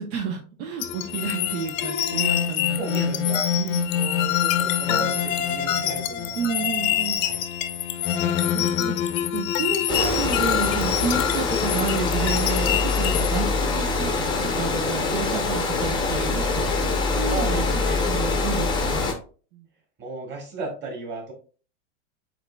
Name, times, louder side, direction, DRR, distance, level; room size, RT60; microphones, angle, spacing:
voice 1, 0.0-3.8 6.4-7.2 8.0-14.2 14.6-16.9 17.2-17.7 18.1-19.0 19.5-19.6, right 6 dB, 65° right, 3 dB, 0.9 m, -31 dB
sound 1, 0.8-13.4, left 10 dB, 75° left, 0.7 m, -25 dB
voice 2, 2.8-3.4 3.9-6.6 7.2-7.4 17.3-18.1 20.0-21.3, right 3 dB, 25° right, -1 dB, 1.9 m, -35 dB
Water, 9.9-19.1, left 3 dB, 10° left, 0.6 m, -24 dB
7.8 x 2.7 x 2.2 m, 0.39 s
supercardioid pair, 135°, 40 cm